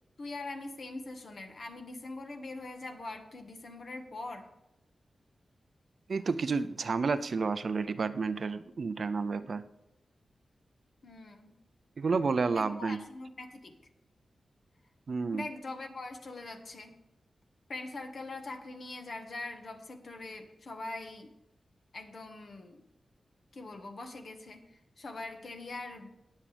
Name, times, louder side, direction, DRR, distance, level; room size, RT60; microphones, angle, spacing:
voice 1, 0.2-4.5 11.0-11.6 12.5-13.7 15.3-17.0 17.7-21.3 21.9-22.8 23.5-26.1, left 2 dB, 60° left, 5 dB, 1.4 m, -42 dB
voice 2, 6.1-9.6 12.0-13.0 15.1-15.4, right 4 dB, 60° right, 12 dB, 0.5 m, -30 dB
19.5 x 7.5 x 3.4 m, 0.88 s
wide cardioid pair, 100°, 0 cm